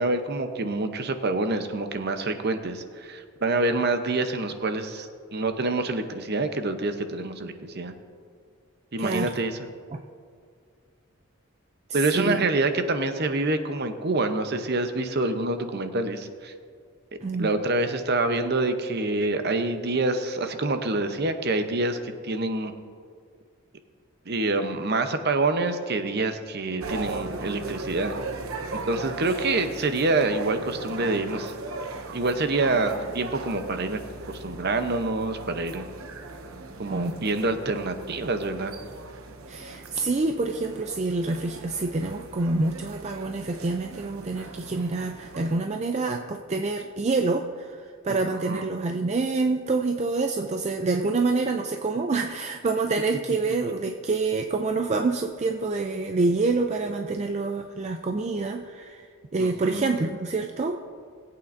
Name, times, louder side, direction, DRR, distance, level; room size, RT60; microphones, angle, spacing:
voice 1, 0.0-7.9 8.9-9.6 11.9-16.5 17.3-22.7 24.3-28.2 28.7-31.5 32.1-34.0 34.3-35.8 36.8-38.8 48.1-48.7 59.4-59.9, right 2 dB, 50° right, 8 dB, 0.8 m, -26 dB
voice 2, 9.0-9.3 9.9-10.0 11.9-12.5 17.2-17.5 36.9-37.2 39.5-59.1 59.3-60.8, right 3 dB, 30° right, 4 dB, 0.4 m, -27 dB
sound 1, 26.8-45.6, right 3 dB, 75° right, 0.9 m, -39 dB
20.5 x 8.6 x 2.6 m, 2.1 s
head